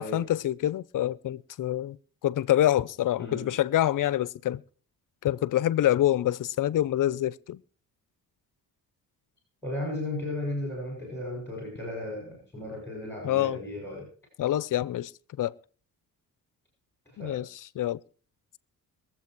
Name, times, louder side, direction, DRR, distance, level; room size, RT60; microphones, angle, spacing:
voice 1, 0.0-2.0 2.2-4.6 5.2-7.6 13.2-13.6 14.4-15.1 15.4-15.5 17.2-17.5 17.8-18.0, left 13 dB, 60° left, 0.7 m, -26 dB
voice 2, 3.2-3.6 9.6-14.1 17.1-17.4, left 1 dB, 5° left, 6.4 m, -35 dB
22.0 x 7.7 x 4.6 m
cardioid pair, 100°, 35 cm